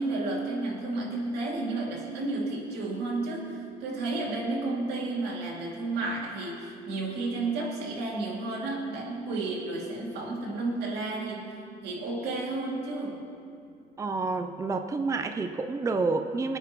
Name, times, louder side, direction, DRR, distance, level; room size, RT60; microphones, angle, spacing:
voice 1, 0.0-11.6 11.8-13.2, right 2 dB, 80° right, -2 dB, 2.5 m, -32 dB
voice 2, 14.0-16.6, right 3 dB, 20° right, 7 dB, 0.5 m, -29 dB
20.0 x 9.0 x 3.1 m, 2.4 s
cardioid pair, 110°, 17 cm